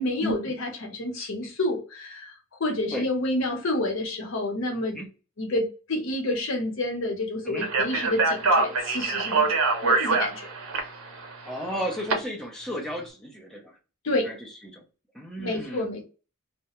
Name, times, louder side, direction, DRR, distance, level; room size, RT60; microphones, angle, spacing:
voice 1, 0.0-5.0 5.4-10.5 14.0-14.3 15.4-16.1, left 1 dB, 65° left, 0.7 m, -29 dB
Speech, 7.6-12.1, right 3 dB, 80° right, 0.7 m, -24 dB
voice 2, 11.5-13.7 14.2-14.3 14.7-14.8 15.1-15.9, equal, ahead, 0.5 m, -33 dB
2.3 x 2.1 x 2.8 m
head